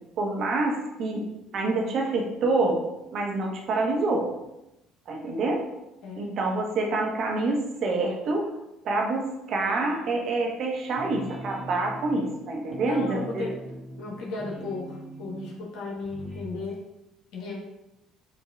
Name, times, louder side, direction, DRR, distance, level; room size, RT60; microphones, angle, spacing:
voice 1, 0.2-1.2 1.5-2.8 3.1-4.3 5.1-5.6 6.2-8.5 8.8-13.5, right 2 dB, 55° right, 0 dB, 1.0 m, -27 dB
sound 1, 9.7-10.5 10.9-15.5 15.9-16.5, right 1 dB, 5° right, 1.0 m, -42 dB
voice 2, 12.8-13.6 14.0-16.8 17.3-17.6, left 3 dB, 70° left, -3 dB, 1.1 m, -35 dB
7.4 x 2.7 x 2.4 m, 0.92 s
hypercardioid pair, 65°, 0 cm